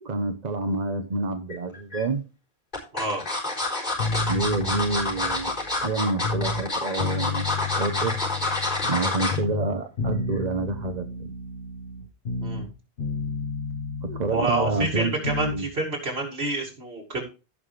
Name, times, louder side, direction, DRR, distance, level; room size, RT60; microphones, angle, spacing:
voice 1, 0.0-2.3 4.3-5.5 5.8-8.2 8.8-11.3 14.0-15.7, right 3 dB, 45° right, 1.0 m, -28 dB
sound 1, 1.5-2.0 2.7-9.4 9.8-10.1 10.4-10.5, left 2 dB, 50° left, 4.4 m, -28 dB
voice 2, 2.9-3.2 12.4-12.7 14.3-17.2, right 2 dB, 75° right, 3.0 m, -28 dB
sound 2, 4.0-6.7 7.0-9.0 9.3-12.7 13.0-15.6, left 4 dB, 90° left, 1.6 m, -32 dB
16.5 x 5.7 x 3.4 m
omnidirectional pair, 1.1 m